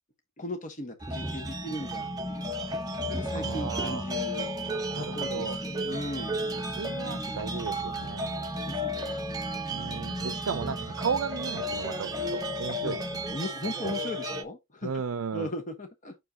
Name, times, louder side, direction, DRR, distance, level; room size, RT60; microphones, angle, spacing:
voice 1, 0.4-2.6 3.0-4.5 4.9-6.4 8.3-9.2 12.8-13.0 13.3-15.0 15.3-16.2, left 1 dB, 35° left, 1.2 m, -38 dB
sound 1, 1.0-14.4, right 1 dB, 15° right, 1.0 m, -34 dB
sound 2, 1.2-13.4, left 1 dB, 15° left, 0.6 m, -40 dB
voice 2, 3.4-4.0 4.9-5.6 6.7-8.3 9.7-13.0 14.8-15.5, right 5 dB, 70° right, 0.5 m, -34 dB
7.4 x 6.4 x 2.8 m
head